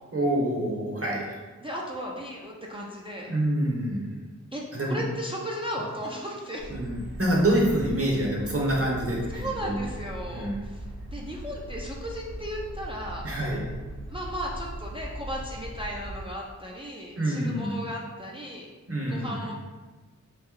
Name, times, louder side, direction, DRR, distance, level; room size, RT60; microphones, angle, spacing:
voice 1, 0.1-1.4 3.3-4.0 4.7-5.0 6.7-9.9 10.3-10.6 13.2-13.6 17.2-17.8 18.9-19.5, right 1 dB, 45° right, -3 dB, 1.0 m, -26 dB
voice 2, 1.6-3.3 4.5-6.7 9.3-13.3 14.1-18.7 19.1-19.5, equal, 15° right, -3 dB, 0.4 m, -36 dB
sound 1, 6.6-16.2, equal, 70° right, 0.8 m, -39 dB
3.1 x 2.6 x 3.7 m, 1.3 s
wide cardioid pair, 50°, 31 cm